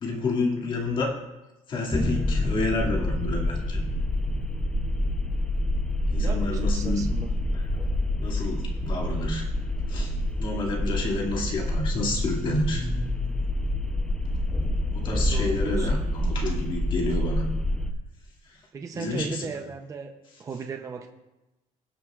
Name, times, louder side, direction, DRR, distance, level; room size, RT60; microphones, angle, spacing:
voice 1, 0.0-1.2 1.7-3.8 6.1-7.1 7.5-7.6 8.2-9.5 9.9-12.9 14.9-17.5 18.5-18.6 18.9-19.5, left 2 dB, 40° left, -1 dB, 2.4 m, -29 dB
sound 1, 1.9-17.9, left 1 dB, 5° left, 0.7 m, -27 dB
voice 2, 6.1-7.3 15.2-16.0 18.7-21.1, right 5 dB, 25° right, 4 dB, 0.7 m, -37 dB
23.5 x 7.8 x 2.5 m, 1.0 s
cardioid pair, 165°, 13 cm